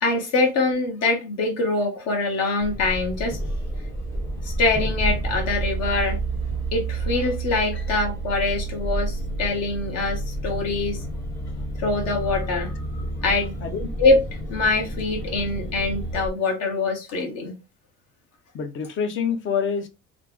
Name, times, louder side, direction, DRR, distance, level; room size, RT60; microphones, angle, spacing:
voice 1, 0.0-3.4 4.4-6.2 6.7-11.0 11.8-12.7 13.2-13.6 14.0-14.2 14.5-17.5, left 3 dB, 60° left, 1.1 m, -24 dB
sound 1, 2.6-16.3, right 2 dB, 10° left, 0.7 m, -30 dB
voice 2, 18.5-19.9, left 6 dB, 40° left, 0.7 m, -26 dB
3.2 x 2.0 x 3.4 m
cardioid pair, 125°, 29 cm